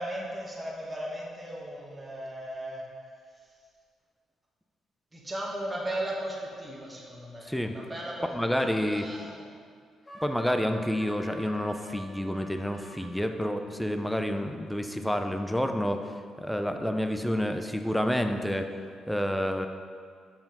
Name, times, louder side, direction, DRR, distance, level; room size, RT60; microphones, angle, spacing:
voice 1, 0.0-2.8 5.1-8.3 8.6-9.6, right 1 dB, 15° right, -3 dB, 1.2 m, -36 dB
voice 2, 7.4-7.8 8.3-9.1 10.2-18.7 19.1-19.7, equal, 5° left, 6 dB, 0.5 m, -29 dB
sound 1, 8.1-8.7 10.0-13.1, equal, 25° left, 1.9 m, -47 dB
5.6 x 4.7 x 5.3 m, 2.1 s
cardioid pair, 90°, 0 cm